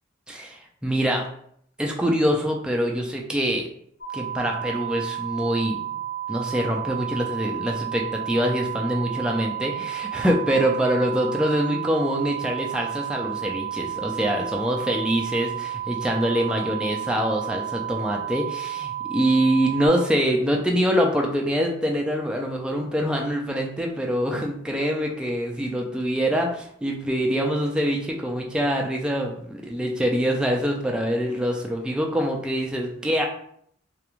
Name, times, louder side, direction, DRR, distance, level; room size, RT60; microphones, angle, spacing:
voice 1, 0.3-1.2 1.8-3.7 4.1-5.8 6.3-33.3, equal, 5° right, 0 dB, 0.3 m, -24 dB
sound 1, 4.0-19.9, right 11 dB, 60° left, 0.7 m, -32 dB
2.4 x 2.2 x 3.0 m, 0.67 s
head